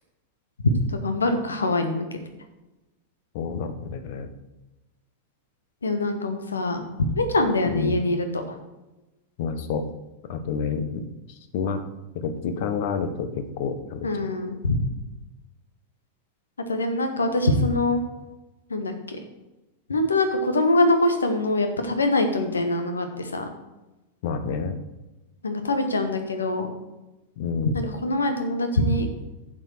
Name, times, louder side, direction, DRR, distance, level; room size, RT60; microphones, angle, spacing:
voice 1, 0.9-2.2 5.8-6.8 7.2-8.6 14.0-14.8 16.7-18.0 18.7-19.2 19.9-23.5 25.4-26.7 27.7-29.1, left 2 dB, 75° left, 7 dB, 1.4 m, -24 dB
voice 2, 3.3-4.3 7.7-8.0 9.4-9.9 10.3-11.8 12.1-14.1 24.2-24.8 27.4-27.7, left 5 dB, 50° left, 9 dB, 1.2 m, -29 dB
11.0 x 7.5 x 4.6 m, 1.0 s
figure-of-eight pair, 90°, 0 cm